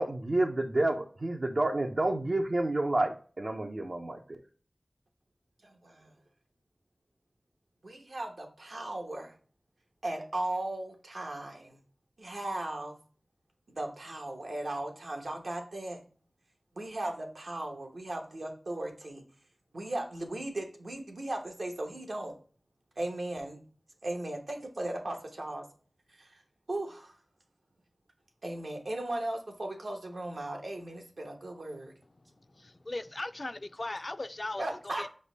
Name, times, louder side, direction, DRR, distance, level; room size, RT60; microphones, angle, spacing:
voice 1, 0.0-4.2, right 2 dB, 65° right, 2 dB, 0.5 m, -29 dB
voice 2, 5.6-6.1 7.8-9.3 10.0-11.8 12.2-13.0 13.7-16.0 16.7-19.2 19.7-22.3 23.0-23.6 24.0-25.6 26.1-26.4 26.7-27.1 28.4-31.9 34.6-35.1, right 1 dB, 80° right, 2 dB, 1.0 m, -37 dB
voice 3, 32.6-35.1, left 2 dB, 45° left, 13 dB, 0.3 m, -38 dB
5.2 x 2.1 x 3.9 m, 0.41 s
wide cardioid pair, 55°, 0 cm